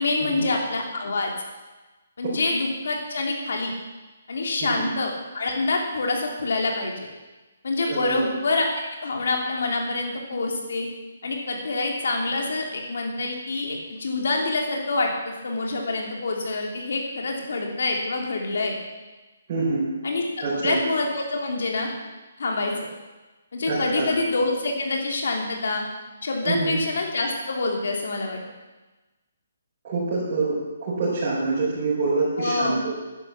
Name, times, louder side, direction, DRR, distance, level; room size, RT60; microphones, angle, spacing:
voice 1, 0.0-1.3 2.2-3.7 4.3-6.9 7.6-8.7 9.0-10.9 11.2-18.8 20.0-21.9 22.4-22.8 23.5-25.8 26.2-28.4 32.4-32.8, left 3 dB, 60° left, 1 dB, 3.1 m, -26 dB
voice 2, 7.9-8.2 19.5-19.8 20.4-20.8 23.7-24.1 26.4-26.8 29.8-30.5 30.8-32.9, right 3 dB, 25° right, -11 dB, 4.6 m, -26 dB
11.0 x 9.9 x 7.2 m, 1.2 s
hypercardioid pair, 175°, 0 cm